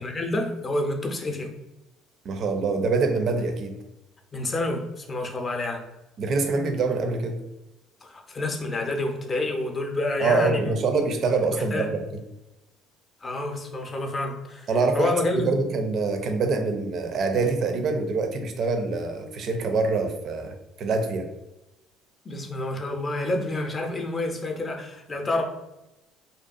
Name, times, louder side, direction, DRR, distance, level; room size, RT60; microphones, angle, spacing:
voice 1, 0.0-1.5 4.3-5.8 8.0-10.8 11.5-11.9 13.2-14.7 14.9-15.5 22.2-25.4, left 2 dB, 35° left, 3 dB, 0.5 m, -28 dB
voice 2, 2.2-3.8 6.2-7.4 10.2-12.2 14.7-21.3, right 3 dB, 55° right, 5 dB, 0.4 m, -25 dB
2.6 x 2.2 x 2.4 m, 0.93 s
supercardioid pair, 75°, 0 cm